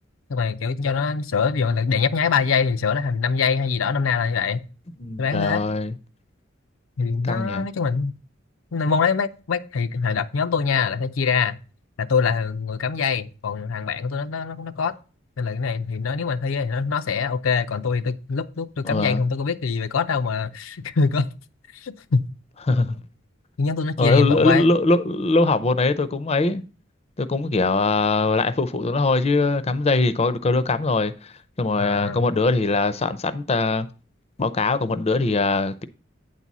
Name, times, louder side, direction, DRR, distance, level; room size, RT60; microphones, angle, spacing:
voice 1, 0.3-4.7 5.2-5.6 7.0-8.1 8.7-11.6 12.0-14.9 15.4-21.3 21.7-22.3 23.6-24.7 31.8-32.3, left 5 dB, 90° left, 0.6 m, -24 dB
voice 2, 5.0-5.9 7.2-7.7 18.8-19.2 22.7-23.0 24.0-26.6 27.2-33.9 34.4-35.8, left 3 dB, 30° left, 0.5 m, -21 dB
9.0 x 4.1 x 6.0 m
head